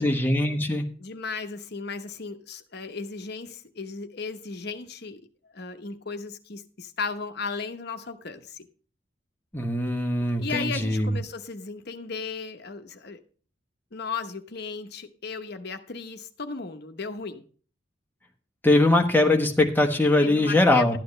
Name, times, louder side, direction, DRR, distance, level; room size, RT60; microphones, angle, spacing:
voice 1, 0.0-0.8 9.5-11.2 18.6-21.0, left 2 dB, 10° left, 1.3 m, -21 dB
voice 2, 1.0-5.2 5.5-8.7 10.4-13.2 13.9-17.4 20.2-21.0, left 4 dB, 55° left, 1.0 m, -35 dB
12.0 x 9.4 x 3.3 m
head